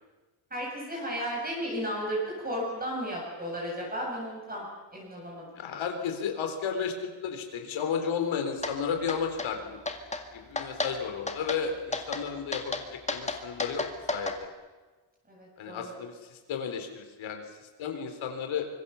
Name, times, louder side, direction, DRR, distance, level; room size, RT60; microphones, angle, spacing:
voice 1, 0.5-5.5 15.3-16.0, equal, 20° right, -3 dB, 7.6 m, -34 dB
voice 2, 5.6-9.8 10.3-13.8 14.1-14.5 15.6-18.7, left 6 dB, 85° left, 5 dB, 3.8 m, -33 dB
sound 1, 8.6-8.8 9.1-9.5 9.9-10.2 10.6-10.9 11.3-11.6 11.9-12.2 12.5-14.4, left 3 dB, 15° left, 2.0 m, -32 dB
25.5 x 23.0 x 7.1 m, 1.3 s
cardioid pair, 165°, 46 cm